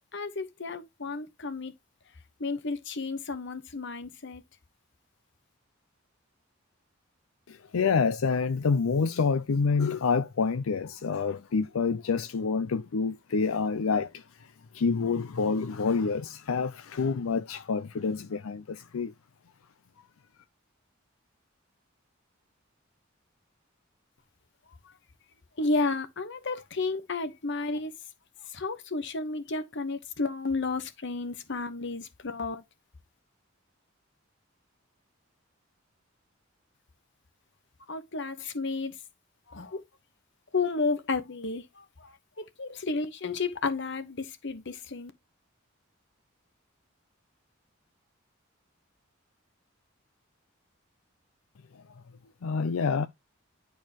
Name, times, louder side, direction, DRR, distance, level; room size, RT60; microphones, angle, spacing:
voice 1, 0.1-1.7 2.4-4.4 24.8-24.9 25.6-27.9 28.4-32.6 37.9-39.0 39.5-39.8 40.5-45.1, left 3 dB, 60° left, 1.1 m, -32 dB
voice 2, 7.5-14.2 14.7-19.1 52.4-53.1, left 5 dB, 90° left, 0.5 m, -27 dB
10.5 x 4.6 x 2.9 m
head